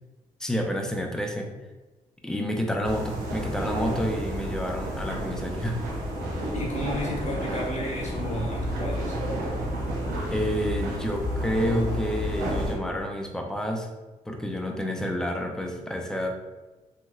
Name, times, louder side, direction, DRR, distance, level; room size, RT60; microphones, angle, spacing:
voice 1, 0.4-1.5 2.2-5.8 10.3-13.9 14.3-16.3, equal, 5° left, 2 dB, 0.6 m, -29 dB
sound 1, 2.8-12.7, equal, 80° right, 0.8 m, -31 dB
voice 2, 6.5-9.2, left 1 dB, 45° left, -3 dB, 1.2 m, -32 dB
3.1 x 2.8 x 2.3 m, 1.2 s
hypercardioid pair, 45°, 17 cm